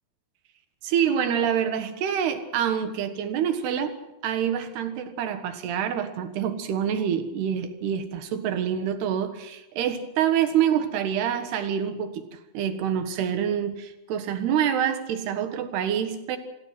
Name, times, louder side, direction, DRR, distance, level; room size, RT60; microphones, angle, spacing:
voice 1, 0.8-3.9 4.2-12.2 12.5-16.4, right 8 dB, 80° right, 8 dB, 3.6 m, -26 dB
26.5 x 18.0 x 6.0 m, 0.96 s
omnidirectional pair, 4.6 m